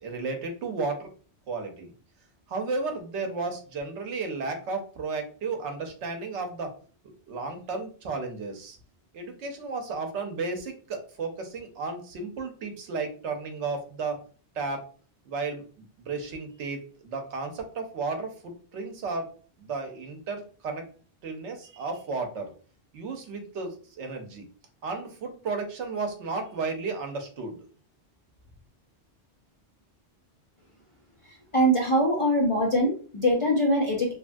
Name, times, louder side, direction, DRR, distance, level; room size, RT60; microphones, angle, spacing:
voice 1, 0.0-1.1 1.5-1.9 2.5-6.8 7.3-8.8 9.1-14.2 14.5-14.8 15.3-20.8 21.2-22.5 22.9-24.4 24.8-27.6, right 4 dB, 90° right, 5 dB, 1.0 m, -33 dB
voice 2, 31.5-34.1, equal, 45° left, -1 dB, 0.4 m, -23 dB
3.0 x 2.3 x 2.5 m, 0.40 s
omnidirectional pair, 1.1 m